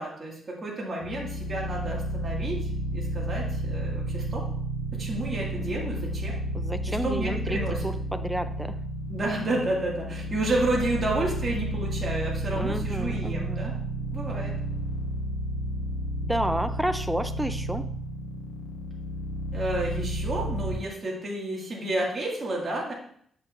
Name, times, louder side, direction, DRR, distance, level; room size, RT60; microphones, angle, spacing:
voice 1, 0.0-2.6 2.9-4.5 4.9-6.4 6.9-7.8 9.1-13.8 14.1-14.5 19.5-22.9, right 2 dB, 30° right, -3 dB, 2.0 m, -30 dB
sound 1, 1.0-20.7, right 1 dB, 85° left, 1.2 m, -31 dB
voice 2, 6.5-8.8 12.5-13.7 16.2-17.9, right 1 dB, 5° right, 10 dB, 0.4 m, -31 dB
7.6 x 5.2 x 2.5 m, 0.63 s
cardioid pair, 110°, 0 cm